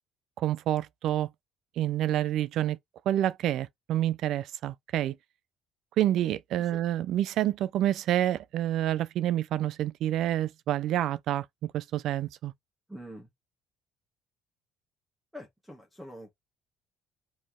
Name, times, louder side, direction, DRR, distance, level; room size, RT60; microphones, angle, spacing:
voice 1, 0.4-1.3 1.8-2.8 3.1-5.2 6.0-12.5, right 12 dB, 60° right, 0.4 m, -28 dB
voice 2, 12.9-13.3 15.3-16.3, equal, ahead, 1.1 m, -45 dB
4.3 x 2.9 x 3.6 m
cardioid pair, 155°, 0 cm